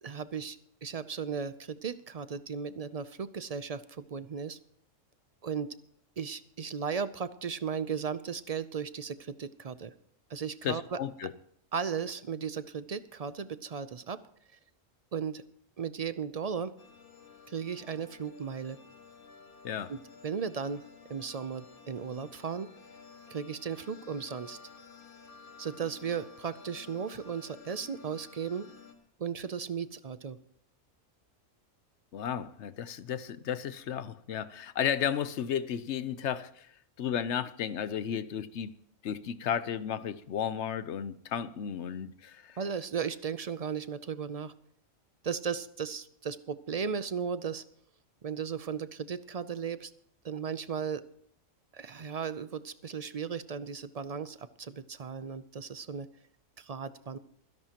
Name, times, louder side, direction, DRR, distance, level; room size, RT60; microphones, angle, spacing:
voice 1, 0.0-4.6 5.4-5.8 6.2-9.9 10.3-11.0 11.7-14.2 15.1-15.4 15.8-16.7 17.5-18.8 19.9-20.8 21.1-22.7 23.3-24.6 25.6-28.7 29.2-30.4 42.6-44.5 45.2-47.6 48.2-49.9 50.2-51.0 51.7-56.1 56.6-57.2, right 6 dB, 55° right, 0.4 m, -36 dB
voice 2, 10.6-11.3 19.6-19.9 32.1-36.7 37.0-38.7 39.0-42.6, left 8 dB, 65° left, 1.0 m, -33 dB
sound 1, 16.8-28.9, left 5 dB, 40° left, 1.8 m, -53 dB
28.5 x 11.0 x 2.9 m
omnidirectional pair, 1.3 m